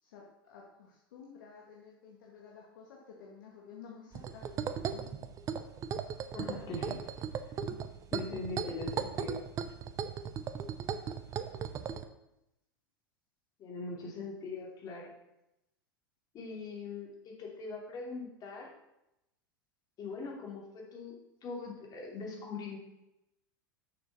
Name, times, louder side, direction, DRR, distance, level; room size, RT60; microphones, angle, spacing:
voice 1, 0.0-5.3, left 6 dB, 60° left, -2 dB, 1.8 m, -53 dB
sound 1, 4.1-12.0, right 7 dB, 30° right, 0.7 m, -37 dB
voice 2, 6.3-7.0 7.6-7.8 8.1-9.4 13.6-15.1 16.3-18.7 20.0-21.2 21.4-22.8, left 3 dB, 35° left, -1 dB, 3.0 m, -41 dB
6.8 x 6.8 x 5.9 m, 0.87 s
figure-of-eight pair, 90°, 12 cm